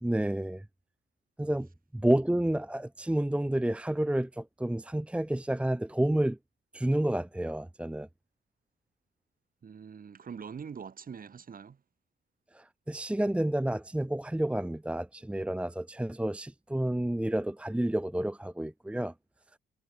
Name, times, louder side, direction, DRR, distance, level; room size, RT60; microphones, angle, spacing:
voice 1, 0.0-0.6 1.4-1.7 1.9-6.4 6.7-8.1 12.5-19.1, right 1 dB, 5° right, 1.1 m, -30 dB
voice 2, 9.6-11.8, right 6 dB, 45° right, 5.4 m, -43 dB
cardioid pair, 90°, 20 cm